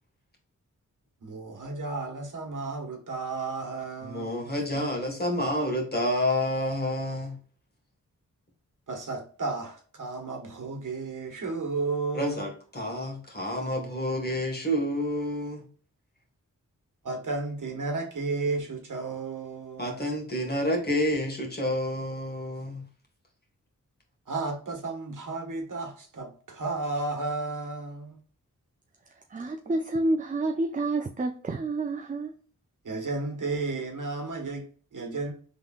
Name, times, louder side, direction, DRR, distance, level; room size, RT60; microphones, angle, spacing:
voice 1, 1.2-4.5 8.9-12.5 17.0-20.1 24.3-28.2 32.8-34.6 34.9-35.3, right 3 dB, 75° right, 1.4 m, -33 dB
voice 2, 4.0-7.4 12.1-15.6 19.8-22.9, left 1 dB, 30° left, 1.8 m, -29 dB
voice 3, 29.1-32.4, right 2 dB, 25° right, 0.5 m, -29 dB
5.3 x 3.6 x 2.5 m
wide cardioid pair, 75°, 32 cm